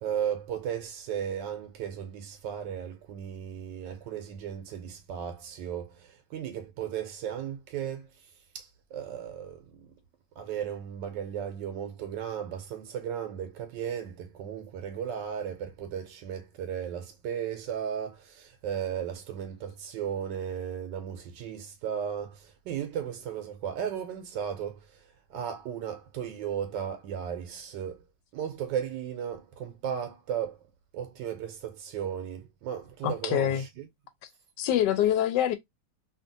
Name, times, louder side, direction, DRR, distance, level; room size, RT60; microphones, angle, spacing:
voice 1, 0.0-8.1 8.5-9.9 10.4-25.0 25.3-28.0 28.3-30.6 30.9-33.9, right 9 dB, 85° right, 1.3 m, -35 dB
voice 2, 33.0-33.6 34.6-35.6, left 11 dB, 75° left, 1.2 m, -25 dB
2.8 x 2.7 x 2.5 m
omnidirectional pair, 1.9 m